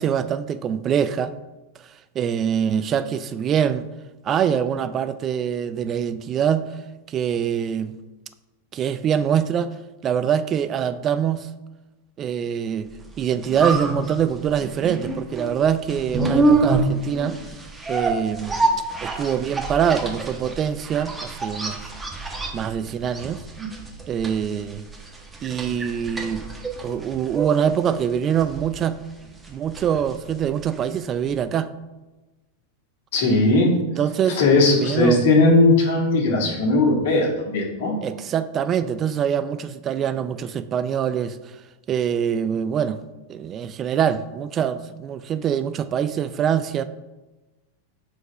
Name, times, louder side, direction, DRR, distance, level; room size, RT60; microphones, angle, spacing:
voice 1, 0.0-1.3 2.2-3.9 4.2-6.6 7.1-8.0 8.7-9.7 10.0-11.5 12.2-12.9 13.2-17.4 17.9-18.5 19.0-21.8 22.5-23.4 24.1-24.8 25.4-26.5 26.8-29.0 29.5-31.7 34.0-34.4 34.7-35.2 38.0-41.4 41.9-43.0 43.3-46.8, right 8 dB, 30° right, 13 dB, 0.3 m, -24 dB
sound 1, 13.0-31.0 31.3-31.4, right 2 dB, 10° right, 1.1 m, -27 dB
voice 2, 33.1-33.8 34.3-37.9, left 2 dB, 60° left, -1 dB, 1.8 m, -18 dB
4.8 x 4.3 x 5.2 m, 1.1 s
hypercardioid pair, 95°, 0 cm